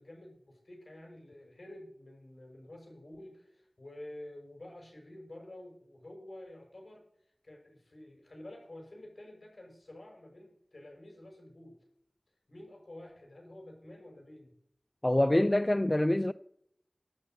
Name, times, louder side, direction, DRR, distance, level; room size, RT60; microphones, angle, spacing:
voice 1, 0.0-11.8 12.5-14.5, left 1 dB, 60° left, 6.3 m, -50 dB
voice 2, 15.0-16.3, left 1 dB, 25° left, 0.3 m, -25 dB
12.0 x 6.7 x 7.9 m
wide cardioid pair, 50°, 0 cm